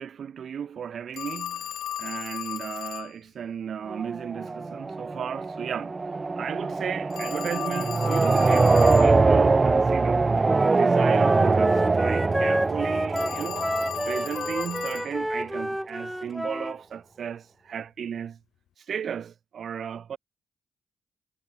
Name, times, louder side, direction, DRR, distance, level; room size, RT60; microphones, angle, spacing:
voice 1, 0.0-1.7 2.0-6.0 6.4-10.3 10.7-13.7 14.1-18.4 18.8-20.2, right 8 dB, 70° right, 1.1 m, -35 dB
Telephone, 1.2-3.1 7.1-9.1 13.1-15.1, left 11 dB, 80° left, 0.7 m, -35 dB
sound 1, 3.9-14.7, right 3 dB, 35° right, 1.1 m, -23 dB
Wind instrument woodwind instrument, 10.4-16.8, equal, 5° right, 2.8 m, -30 dB
supercardioid pair, 50°, 0 cm